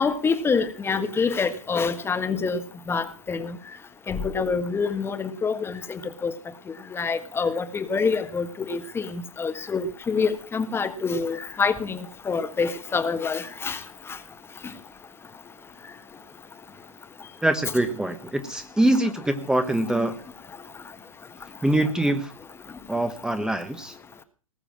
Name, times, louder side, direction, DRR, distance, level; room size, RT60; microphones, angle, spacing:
voice 1, 0.0-2.6 2.9-3.5 4.1-6.3 6.9-13.8, left 5 dB, 15° left, 1.5 m, -26 dB
voice 2, 17.4-20.1 21.6-22.3 22.9-23.9, right 1 dB, 5° right, 1.3 m, -24 dB
19.5 x 6.8 x 7.6 m
hypercardioid pair, 115°, 18 cm